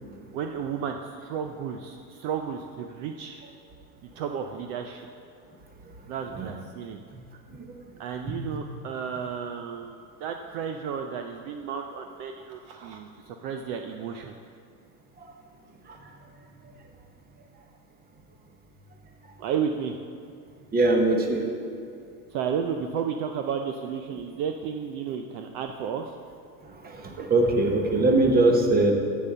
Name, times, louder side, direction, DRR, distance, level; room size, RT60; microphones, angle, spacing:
voice 1, 0.3-3.5 4.2-5.0 6.1-7.0 8.0-14.3 19.4-20.0 22.3-26.1, right 7 dB, 50° right, 5 dB, 0.6 m, -32 dB
voice 2, 20.7-21.5 26.8-28.9, right 2 dB, 20° right, 3 dB, 1.0 m, -21 dB
8.0 x 7.5 x 6.7 m, 2.5 s
supercardioid pair, 140°, 50 cm